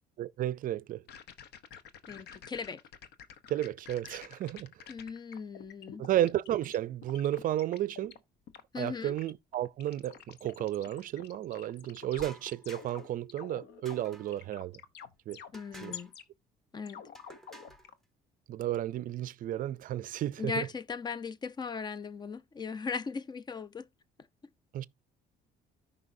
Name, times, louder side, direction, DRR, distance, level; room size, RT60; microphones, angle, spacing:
voice 1, 0.2-1.0 3.5-4.7 6.0-8.1 8.8-14.8 15.3-15.4 15.8-16.0 18.5-20.7 24.7-24.9, right 12 dB, 55° right, 0.4 m, -33 dB
sound 1, 1.1-6.8 7.0-8.2 8.5-16.2 16.9-17.9, left 8 dB, 85° left, 1.0 m, -48 dB
voice 2, 2.1-2.8 4.9-6.0 8.7-9.2 15.5-16.1 16.7-17.0 20.4-23.9, left 5 dB, 25° left, 0.4 m, -38 dB
sound 2, 12.2-13.1 13.9-14.5 15.5-16.1 17.1-17.9, right 1 dB, ahead, 1.0 m, -51 dB
13.5 x 5.3 x 2.6 m
cardioid pair, 110°, 17 cm